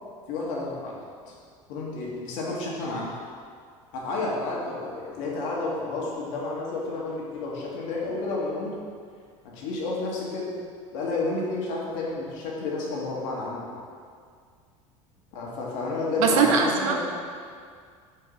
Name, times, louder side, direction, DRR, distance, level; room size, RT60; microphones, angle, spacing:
voice 1, 0.3-1.0 1.3-1.4 1.7-3.2 3.9-8.7 9.4-10.5 10.9-13.7 15.3-17.1, left 3 dB, 70° left, -4 dB, 1.7 m, -31 dB
voice 2, 16.2-17.1, right 5 dB, 75° right, 2 dB, 0.9 m, -21 dB
4.6 x 4.5 x 5.6 m, 2.1 s
hypercardioid pair, 85°, 17 cm